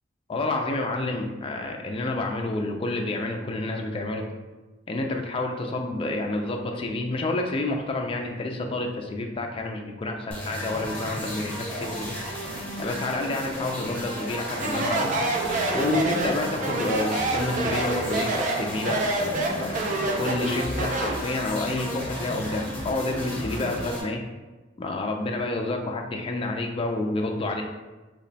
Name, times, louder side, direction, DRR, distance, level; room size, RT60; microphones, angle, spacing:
voice 1, 0.3-4.3 4.9-12.1 12.8-15.1 15.7-24.2 24.8-27.6, left 2 dB, 30° left, 2 dB, 0.3 m, -29 dB
sound 1, 10.3-24.0, equal, 10° left, 0.8 m, -34 dB
Speech, 14.5-21.3, right 2 dB, 40° right, 0.4 m, -27 dB
2.9 x 2.2 x 4.0 m, 1.2 s
head